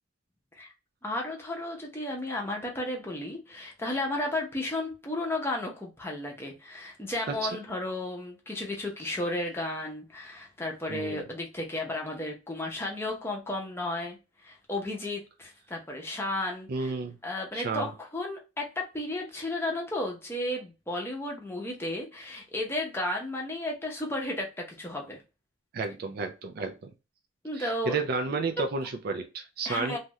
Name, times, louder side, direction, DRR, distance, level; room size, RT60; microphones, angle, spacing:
voice 1, 1.0-16.9 17.2-25.2 27.4-28.0 28.3-28.7 29.6-30.0, left 1 dB, 10° left, 0.6 m, -33 dB
voice 2, 10.9-11.3 16.7-17.2 17.5-17.9 25.7-26.9 27.5-30.0, right 4 dB, 45° right, 0.3 m, -32 dB
2.7 x 2.4 x 3.0 m
head